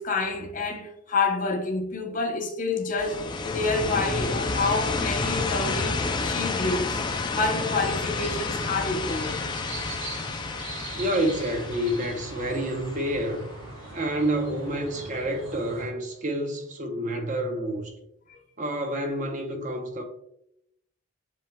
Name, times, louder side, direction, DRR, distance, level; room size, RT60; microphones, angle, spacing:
voice 1, 0.0-7.0 7.3-9.4 18.3-18.4, left 3 dB, 40° left, 0.7 m, -28 dB
sound 1, 3.0-13.7, left 3 dB, 20° left, 0.3 m, -30 dB
sound 2, 4.9-15.9, right 2 dB, 70° right, 1.0 m, -42 dB
voice 2, 11.0-13.5 13.9-17.9 18.6-20.0, right 1 dB, 40° right, 0.7 m, -28 dB
7.2 x 3.2 x 2.2 m
head